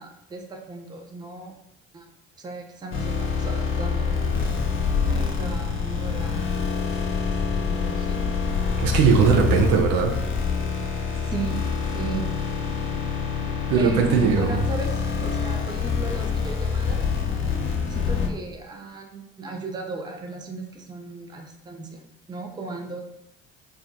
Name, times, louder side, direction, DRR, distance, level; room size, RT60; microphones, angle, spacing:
voice 1, 0.0-1.5 1.9-2.1 2.4-4.2 5.1-6.5 7.2-8.3 11.2-11.6 11.9-12.3 13.8-17.1 17.9-23.0, right 3 dB, 10° right, 3 dB, 0.5 m, -36 dB
sound 1, 2.9-18.3, left 5 dB, 30° left, 0.7 m, -26 dB
voice 2, 8.8-10.1 13.7-14.6, right 6 dB, 65° right, 3 dB, 0.6 m, -19 dB
2.4 x 2.1 x 3.9 m, 0.83 s
hypercardioid pair, 55°, 38 cm